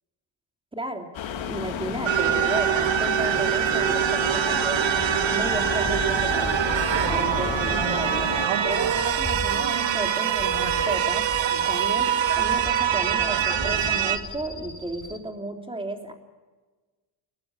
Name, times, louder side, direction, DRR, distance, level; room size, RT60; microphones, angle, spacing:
voice 1, 0.8-1.1 1.4-6.7 7.1-8.3 8.6-11.3 11.7-16.1, right 2 dB, 10° right, 3 dB, 3.4 m, -33 dB
sound 1, 1.1-8.5, left 8 dB, 80° left, 3.1 m, -32 dB
sound 2, 2.0-14.2, right 10 dB, 70° right, 1.9 m, -24 dB
sound 3, 4.8-15.2, left 2 dB, 10° left, 2.8 m, -37 dB
29.5 x 15.5 x 9.8 m, 1.3 s
cardioid pair, 135°, 47 cm